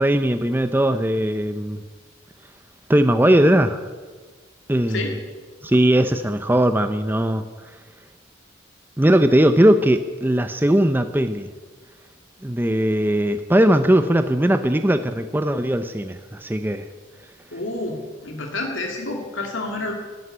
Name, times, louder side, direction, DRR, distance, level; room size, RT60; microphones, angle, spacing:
voice 1, 0.0-1.8 2.9-3.9 4.7-5.0 5.6-7.5 9.0-11.5 12.4-16.9, right 1 dB, 10° right, 9 dB, 0.6 m, -19 dB
voice 2, 17.5-19.9, left 2 dB, 70° left, 2 dB, 2.6 m, -29 dB
13.0 x 11.0 x 9.9 m, 1.4 s
head